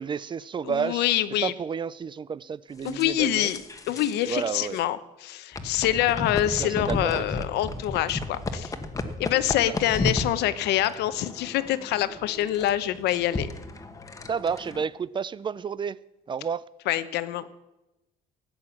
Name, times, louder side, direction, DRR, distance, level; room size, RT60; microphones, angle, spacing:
voice 1, 0.0-1.1 1.4-3.5 4.2-4.8 6.6-7.2 9.6-9.8 14.3-16.0 16.3-16.6, right 6 dB, 30° right, 0.4 m, -31 dB
voice 2, 0.6-1.5 2.8-3.6 3.9-8.7 9.2-13.5 16.9-17.4, left 13 dB, 80° left, 0.9 m, -26 dB
sound 1, 2.9-4.3 4.6-4.8 5.5-14.8, left 2 dB, 20° left, 1.2 m, -34 dB
13.5 x 8.7 x 7.2 m
cardioid pair, 110°, 17 cm